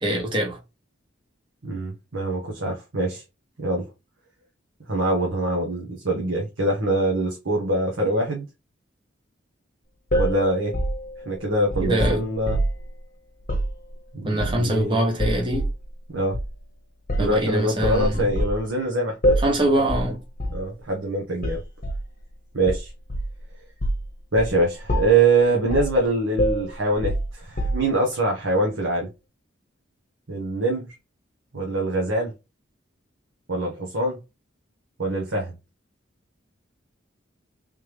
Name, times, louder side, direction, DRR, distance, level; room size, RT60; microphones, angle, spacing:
voice 1, 0.0-0.6 11.8-12.2 14.2-15.7 17.2-18.3 19.4-20.2, right 1 dB, 25° right, 1.0 m, -23 dB
voice 2, 1.6-3.2 3.6-3.9 4.9-8.4 10.2-10.7 11.2-12.6 14.1-15.0 16.1-16.4 17.2-19.2 20.1-20.2 20.5-21.6 22.5-22.9 24.3-29.1 30.3-30.9 31.5-32.3 33.5-34.2 35.0-35.5, right 2 dB, 80° right, 1.0 m, -24 dB
sound 1, 10.1-12.9 13.4-13.7 14.4-14.8 15.2-15.8 16.3-16.5 17.1-17.4 17.8-18.6 19.2-19.6 19.9-20.1 20.4-20.6 21.4-22.1 22.7-23.4 23.8-24.1 24.4-24.6 24.9-25.3 25.7-26.0 26.4-28.0, equal, 45° left, 0.9 m, -25 dB
3.4 x 3.0 x 3.3 m
head